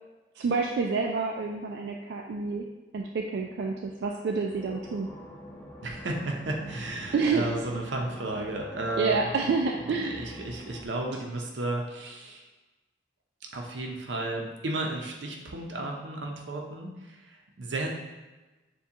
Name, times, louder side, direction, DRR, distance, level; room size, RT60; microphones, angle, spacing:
voice 1, 0.4-2.7 2.9-5.1 7.1-7.4 9.0-10.3, right 4 dB, 65° right, 0 dB, 0.3 m, -28 dB
sound 1, 4.5-10.9, left 1 dB, 10° left, 0.4 m, -45 dB
voice 2, 5.8-9.4 9.7-12.5 13.5-17.9, right 2 dB, 85° right, 1 dB, 0.7 m, -33 dB
6.8 x 2.3 x 2.8 m, 1.2 s
head